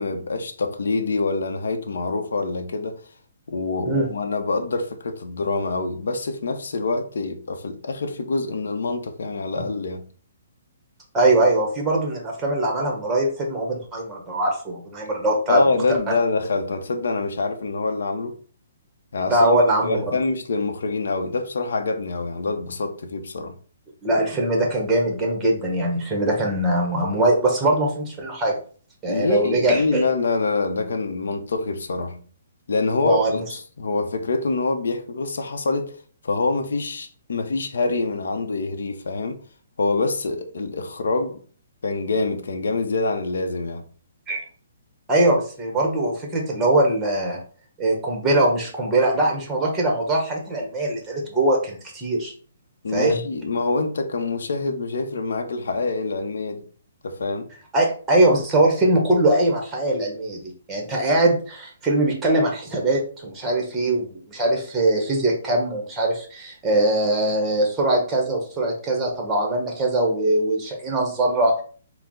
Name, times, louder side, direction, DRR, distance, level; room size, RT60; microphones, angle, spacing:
voice 1, 0.0-3.0 3.5-10.0 15.5-18.4 19.1-23.5 29.1-32.2 32.7-36.0 36.2-39.4 39.8-41.4 41.8-43.8 52.8-56.7 57.0-57.5, left 3 dB, 80° left, 0.6 m, -25 dB
voice 2, 11.1-15.6 16.1-16.2 19.3-20.2 24.0-28.5 29.0-30.0 33.0-33.4 44.3-44.4 45.1-47.4 47.8-52.3 52.9-53.2 57.7-60.4 60.7-71.5, right 1 dB, 10° right, 0.9 m, -21 dB
4.4 x 2.0 x 3.7 m
hypercardioid pair, 165°, 0 cm